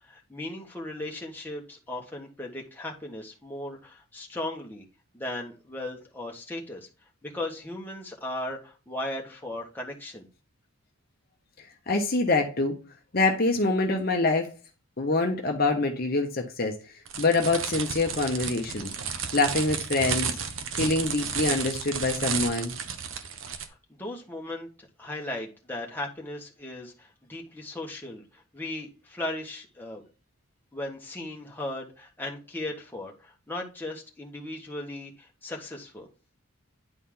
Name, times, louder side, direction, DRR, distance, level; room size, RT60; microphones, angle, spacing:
voice 1, 0.0-4.8 5.1-6.9 7.2-10.3 23.7-30.0 30.7-36.1, left 1 dB, 10° left, 1.5 m, -37 dB
voice 2, 11.9-12.7 13.1-14.5 15.0-16.8 17.2-18.9 19.3-20.3 20.7-22.7, left 3 dB, 45° left, 1.0 m, -25 dB
sound 1, 17.1-23.7, right 6 dB, 65° right, 1.0 m, -32 dB
9.9 x 4.3 x 3.8 m
head